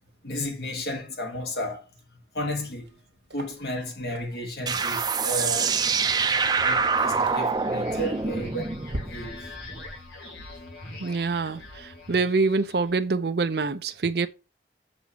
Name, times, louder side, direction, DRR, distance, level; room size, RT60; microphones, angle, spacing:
voice 1, 0.2-1.9 2.3-3.0 3.3-5.8 6.6-9.4 9.8-10.3 10.8-11.2, left 1 dB, 65° left, 1.5 m, -34 dB
sound 1, 2.8-3.0 3.3-9.0, right 1 dB, 80° right, 1.2 m, -42 dB
sound 2, 4.7-9.9, right 5 dB, 20° right, 0.6 m, -26 dB
sound 3, 6.4-13.0, left 2 dB, 90° left, 3.3 m, -43 dB
voice 2, 11.0-14.3, right 4 dB, 65° right, 0.5 m, -25 dB
7.6 x 7.0 x 2.9 m
head